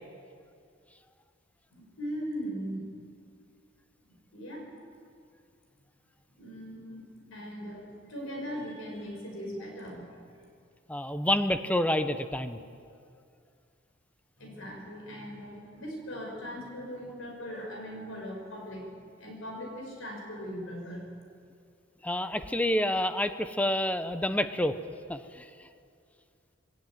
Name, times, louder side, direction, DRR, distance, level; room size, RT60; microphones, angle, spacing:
voice 1, 1.7-2.8 4.3-4.7 6.4-7.0 7.3-10.0 14.4-18.9 19.2-21.1, equal, 85° left, 1 dB, 5.8 m, -39 dB
voice 2, 10.9-12.6 22.0-24.8 25.1-25.4, left 1 dB, 5° left, 10 dB, 0.8 m, -28 dB
21.0 x 17.0 x 9.3 m, 2.4 s
head